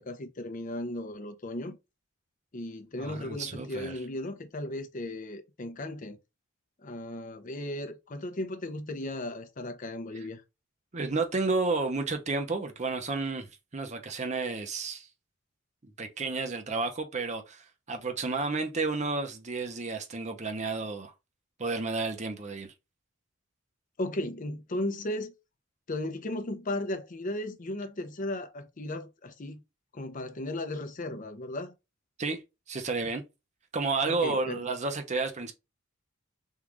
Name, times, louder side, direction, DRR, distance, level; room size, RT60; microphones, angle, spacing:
voice 1, 0.0-1.8 2.5-6.2 6.8-10.4 24.0-25.3 25.9-29.6 29.9-31.7 34.0-34.6, left 1 dB, 40° left, 0.6 m, -36 dB
voice 2, 3.0-4.0 10.9-15.1 15.8-21.1 21.6-22.7 32.2-32.4 32.7-33.2 33.7-35.5, right 3 dB, 35° right, 0.7 m, -31 dB
3.7 x 2.4 x 3.0 m
head